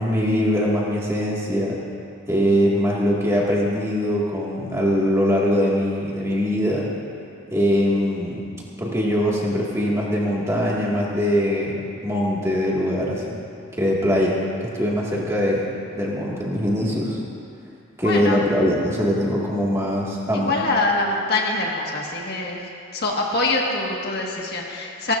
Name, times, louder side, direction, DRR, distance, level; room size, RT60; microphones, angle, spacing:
voice 1, 0.0-1.8 2.3-6.9 7.5-8.5 8.8-13.4 13.7-15.7 15.9-17.2 18.0-20.6, equal, 15° right, -5 dB, 1.9 m, -22 dB
voice 2, 18.0-18.4 20.3-25.2, left 2 dB, 50° left, -2 dB, 1.6 m, -24 dB
30.0 x 12.5 x 2.6 m, 2.5 s
head